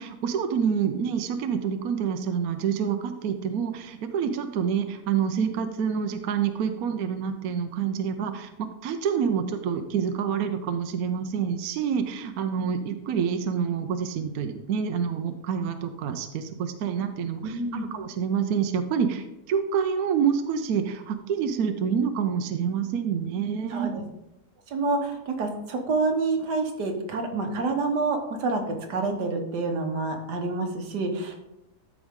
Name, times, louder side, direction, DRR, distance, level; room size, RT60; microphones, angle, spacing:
voice 1, 0.0-23.9, right 7 dB, 70° right, 7 dB, 1.1 m, -27 dB
voice 2, 17.4-17.9 23.7-23.9 24.7-31.4, right 3 dB, 85° right, 4 dB, 1.8 m, -28 dB
13.0 x 4.9 x 3.6 m, 0.90 s
omnidirectional pair, 1.7 m